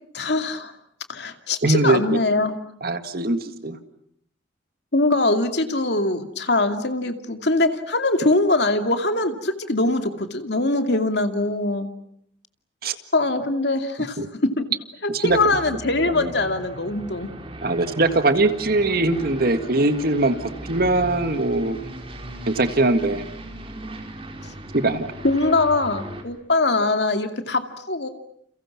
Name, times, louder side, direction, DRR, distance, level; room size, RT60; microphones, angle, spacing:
voice 1, 0.1-0.7 1.1-2.6 4.9-11.9 13.1-14.6 15.2-17.3 25.2-28.1, left 2 dB, 65° left, 7 dB, 2.5 m, -22 dB
voice 2, 1.6-2.2 2.8-3.8 12.8-12.9 14.2-14.3 15.1-15.4 16.1-16.3 17.6-21.8 22.5-23.3 24.7-25.1, right 2 dB, 55° right, 9 dB, 1.9 m, -21 dB
Aircraft, 15.3-26.2, right 1 dB, 30° right, 4.1 m, -37 dB
30.0 x 29.5 x 6.0 m, 0.68 s
head